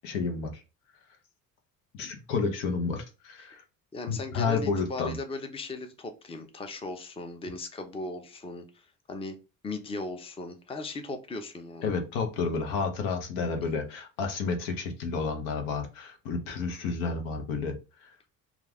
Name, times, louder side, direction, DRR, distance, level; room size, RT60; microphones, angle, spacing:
voice 1, 0.0-0.6 1.9-3.6 4.1-5.2 11.8-17.7 18.0-18.1, left 4 dB, 80° left, 4 dB, 0.8 m, -31 dB
voice 2, 3.9-9.4 9.6-11.9, left 2 dB, 15° left, 7 dB, 0.5 m, -38 dB
2.3 x 2.3 x 3.3 m, 0.30 s
supercardioid pair, 75°, 40 cm